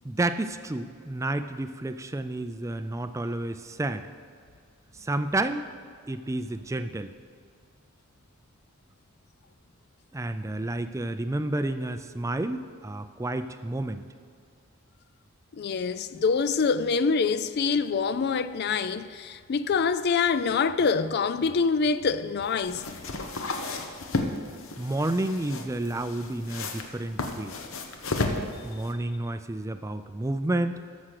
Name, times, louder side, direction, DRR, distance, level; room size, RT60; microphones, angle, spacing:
voice 1, 0.0-4.1 4.9-5.7 6.1-7.1 10.1-14.0 24.8-27.6 28.6-30.8, right 2 dB, 15° right, 0.4 m, -30 dB
voice 2, 15.5-22.8, left 5 dB, 50° left, 0.4 m, -25 dB
sound 1, 22.4-28.9, left 2 dB, 70° left, 1.0 m, -33 dB
13.5 x 6.2 x 6.6 m
head